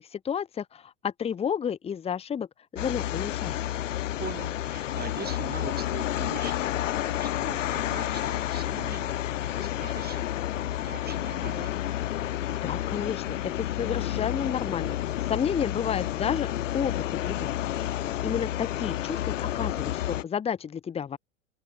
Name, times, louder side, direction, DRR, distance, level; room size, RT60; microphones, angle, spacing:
voice 1, 0.0-2.5 2.7-3.6 12.5-16.5 16.7-17.9 18.2-21.2, left 8 dB, 15° left, 0.8 m, -31 dB
sound 1, 2.8-20.2, left 13 dB, 80° left, 0.8 m, -30 dB
voice 2, 4.2-10.3 10.7-11.7, right 7 dB, 25° right, 5.7 m, -42 dB
open air
hypercardioid pair, 90°, 37 cm